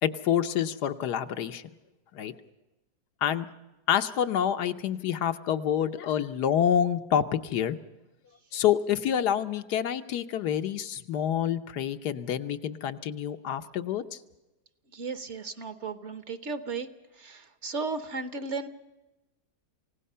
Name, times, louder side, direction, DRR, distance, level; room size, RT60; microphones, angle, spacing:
voice 1, 0.0-1.6 2.1-2.3 3.2-3.5 3.9-7.8 8.5-14.2, left 9 dB, 85° left, 8 dB, 1.4 m, -27 dB
voice 2, 14.9-16.9 17.2-18.7, right 4 dB, 50° right, 11 dB, 1.2 m, -35 dB
28.5 x 17.0 x 5.6 m, 1.1 s
omnidirectional pair, 1.7 m